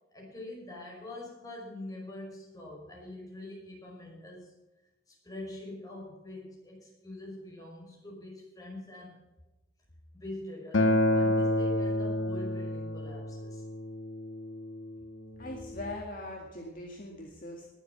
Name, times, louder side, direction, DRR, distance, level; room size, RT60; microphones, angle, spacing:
voice 1, 0.1-4.5 5.1-9.2 10.1-13.6, left 1 dB, 20° left, -2 dB, 5.6 m, -44 dB
Acoustic guitar, 10.7-15.9, left 1 dB, 85° left, 1.4 m, -29 dB
voice 2, 15.4-17.7, left 1 dB, 45° left, 0 dB, 2.0 m, -41 dB
19.5 x 8.0 x 5.8 m, 1.0 s
head